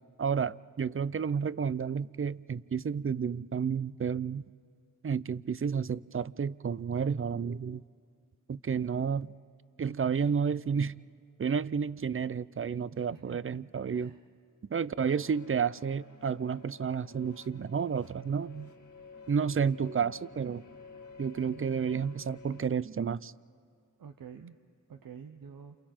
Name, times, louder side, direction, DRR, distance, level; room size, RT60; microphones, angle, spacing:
voice 1, 0.2-4.4 5.0-7.8 8.5-9.3 9.8-10.9 11.4-14.1 14.7-18.7 19.3-20.6 21.2-23.3, right 6 dB, 40° right, 19 dB, 0.5 m, -31 dB
voice 2, 12.9-13.6 13.9-14.3 24.0-24.6 24.9-25.8, right 7 dB, 90° right, 6 dB, 0.7 m, -48 dB
sound 1, 15.0-22.7, left 4 dB, 60° left, 1.8 m, -52 dB
29.5 x 28.0 x 4.4 m, 2.2 s
cardioid pair, 40°, 33 cm